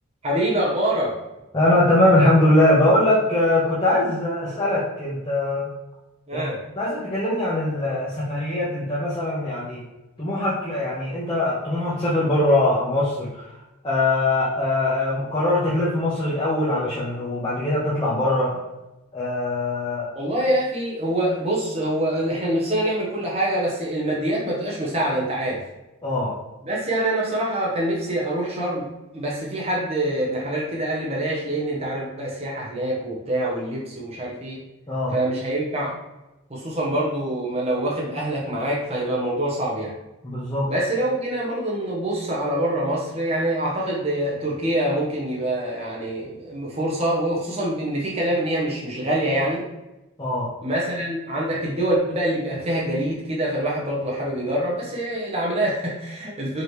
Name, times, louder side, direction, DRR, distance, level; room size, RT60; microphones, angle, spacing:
voice 1, 0.2-1.1 6.3-6.6 20.1-25.6 26.6-34.6 35.1-35.9 36.5-39.9 40.7-49.6 50.6-56.6, right 1 dB, 30° right, -4 dB, 0.9 m, -25 dB
voice 2, 1.5-5.7 6.3-6.4 6.7-9.8 10.2-13.5 13.8-18.6 19.1-20.1 26.0-26.3 34.9-35.1 40.2-40.7 50.2-50.5, left 1 dB, 20° left, -9 dB, 0.8 m, -21 dB
4.9 x 3.0 x 3.2 m, 1.0 s
head